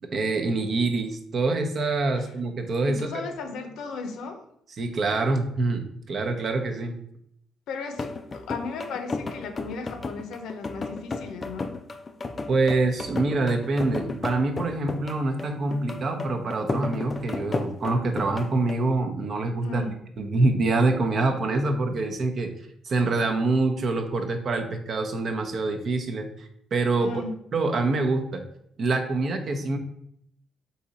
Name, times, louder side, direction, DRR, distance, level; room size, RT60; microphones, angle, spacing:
voice 1, 0.0-3.0 4.8-7.0 12.5-19.8 20.2-22.5 22.8-27.1 27.5-28.4 28.8-29.8, right 3 dB, 50° right, 6 dB, 0.7 m, -25 dB
voice 2, 2.9-4.4 7.7-11.7 19.6-19.9 27.0-27.3, left 4 dB, 75° left, 6 dB, 0.6 m, -36 dB
sound 1, 7.9-18.9, left 3 dB, 35° left, 0.4 m, -34 dB
4.0 x 2.8 x 4.0 m, 0.72 s
supercardioid pair, 75°, 0 cm